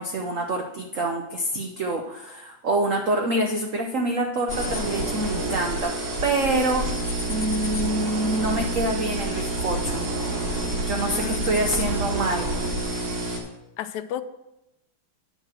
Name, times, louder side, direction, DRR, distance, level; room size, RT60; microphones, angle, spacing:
voice 1, 0.0-5.9 6.2-6.9 7.3-10.1 10.8-12.5, right 1 dB, 65° right, 2 dB, 0.7 m, -26 dB
sound 1, 4.5-13.4, right 2 dB, 45° right, 2.6 m, -28 dB
voice 2, 11.0-11.5 13.8-14.2, left 10 dB, 80° left, 9 dB, 0.9 m, -32 dB
9.5 x 4.7 x 7.5 m, 0.92 s
omnidirectional pair, 2.4 m